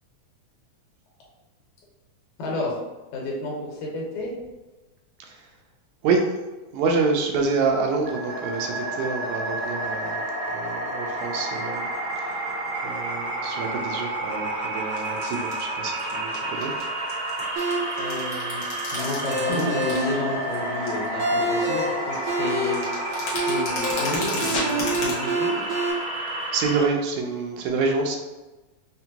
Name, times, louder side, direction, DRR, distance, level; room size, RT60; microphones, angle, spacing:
voice 1, 2.4-2.7 3.1-4.3 18.0-22.8 23.3-25.6, left 2 dB, 80° left, -3 dB, 2.3 m, -31 dB
voice 2, 6.7-10.2 10.5-11.9 12.2-12.4 12.8-16.7 26.5-28.2, right 4 dB, 85° right, 2 dB, 2.0 m, -27 dB
sound 1, 8.1-26.8, right 1 dB, 35° right, 1.3 m, -30 dB
sound 2, 14.8-15.6 16.0-16.8 17.1-20.1 20.4-21.1 21.5-21.6 21.8-25.1, left 2 dB, 60° left, 1.2 m, -34 dB
sound 3, 17.6-25.9, right 2 dB, 65° right, 1.4 m, -28 dB
5.4 x 2.2 x 2.8 m, 1.1 s
omnidirectional pair, 3.4 m